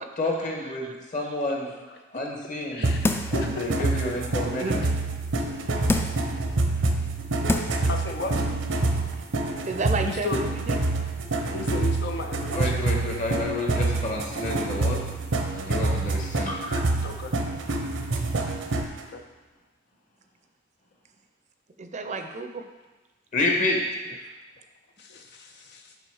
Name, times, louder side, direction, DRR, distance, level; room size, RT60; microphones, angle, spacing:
voice 1, 0.2-1.7 2.1-2.9 3.3-4.9 12.5-15.0 15.5-16.8 23.3-23.8, left 2 dB, 45° left, -1 dB, 1.4 m, -29 dB
sound 1, 2.8-19.0, right 2 dB, 85° right, 0.8 m, -27 dB
sound 2, 3.0-3.5 4.0-4.1 5.9-6.3 7.0-7.1 7.5-7.9 8.3-8.4, left 2 dB, 10° left, 0.3 m, -26 dB
voice 2, 3.3-3.7 4.1-4.2 7.9-8.4 10.0-10.4 11.5-12.8 17.0-17.4 19.1-19.2 25.0-25.9, left 3 dB, 60° left, 4 dB, 0.5 m, -34 dB
voice 3, 9.6-10.8 21.8-22.6 24.2-24.3, right 3 dB, 40° right, 6 dB, 0.5 m, -31 dB
6.9 x 5.2 x 4.8 m, 1.2 s
head